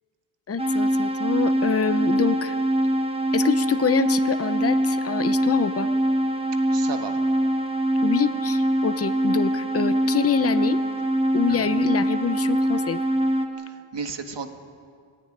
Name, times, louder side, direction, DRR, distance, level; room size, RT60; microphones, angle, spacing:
voice 1, 0.5-2.6 3.3-5.9 8.0-10.8 11.3-13.0, left 6 dB, 30° left, 12 dB, 0.7 m, -25 dB
sound 1, 0.6-13.5, right 1 dB, 10° right, 1.7 m, -23 dB
voice 2, 6.7-7.2 13.6-14.5, right 5 dB, 55° right, 7 dB, 1.8 m, -33 dB
22.5 x 17.0 x 9.9 m, 2.2 s
wide cardioid pair, 145°, 49 cm